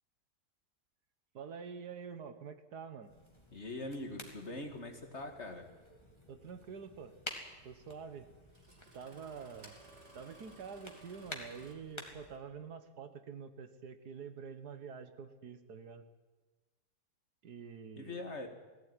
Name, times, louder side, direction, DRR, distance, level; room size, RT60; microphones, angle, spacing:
voice 1, 1.3-3.1 6.3-7.1 7.6-8.3 8.9-9.8 10.2-16.0 17.4-18.3, right 6 dB, 85° right, 10 dB, 2.0 m, -47 dB
sound 1, 3.1-12.4, left 1 dB, 15° left, 2.6 m, -51 dB
voice 2, 3.5-5.7 18.0-18.5, left 2 dB, 45° left, 5 dB, 2.4 m, -42 dB
Engine starting, 6.2-6.3 7.9-8.0 8.5-11.7, right 2 dB, 45° right, 3.6 m, -57 dB
18.5 x 16.0 x 9.8 m, 1.2 s
omnidirectional pair, 1.7 m